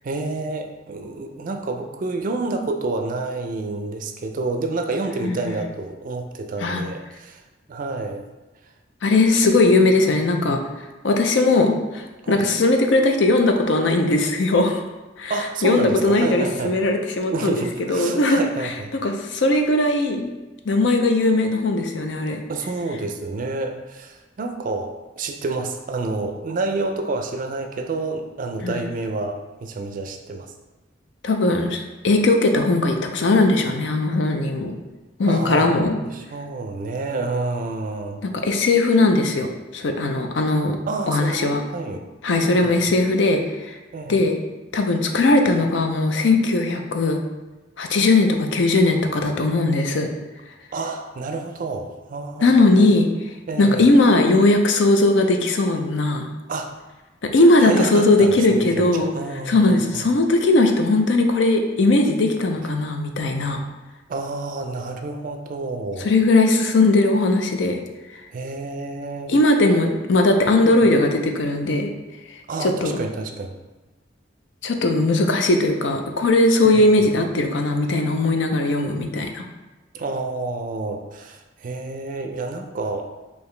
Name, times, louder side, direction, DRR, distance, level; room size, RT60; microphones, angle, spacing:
voice 1, 0.0-7.4 7.7-8.2 12.2-12.5 15.3-16.7 17.3-18.9 22.5-30.5 35.3-35.7 36.0-38.2 40.9-42.0 42.3-42.9 43.9-44.2 50.7-52.9 53.5-53.9 56.5-56.7 57.6-60.0 64.1-66.1 68.3-69.3 69.9-70.0 70.6-70.9 72.5-73.6 76.6-77.0 79.9-83.1, right 3 dB, 45° right, 5 dB, 0.4 m, -29 dB
voice 2, 5.2-5.6 6.6-6.8 9.0-10.6 11.0-14.8 15.2-15.3 15.6-20.3 20.7-22.4 28.6-28.8 31.2-34.8 35.2-36.0 38.2-40.8 41.1-41.6 42.2-43.7 44.1-44.4 44.7-47.2 47.8-50.1 52.4-53.1 53.6-56.3 57.3-59.1 59.5-63.6 66.0-67.8 69.3-71.9 72.6-73.0 74.6-79.5, left 2 dB, 80° left, 4 dB, 0.5 m, -19 dB
4.8 x 2.8 x 3.2 m, 1.1 s
head